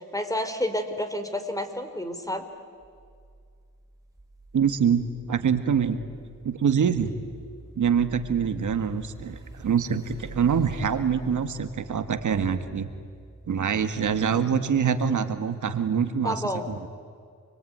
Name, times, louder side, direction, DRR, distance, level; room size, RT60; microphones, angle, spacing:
voice 1, 0.0-2.5 16.2-16.7, left 1 dB, 10° left, 8 dB, 3.5 m, -30 dB
sound 1, 2.8-16.0, right 2 dB, 10° right, 6.7 m, -47 dB
voice 2, 4.5-6.0 6.4-7.1 7.7-12.9 13.5-16.7, right 7 dB, 75° right, 9 dB, 1.7 m, -25 dB
29.0 x 22.0 x 9.4 m, 2.1 s
cardioid pair, 75°, 31 cm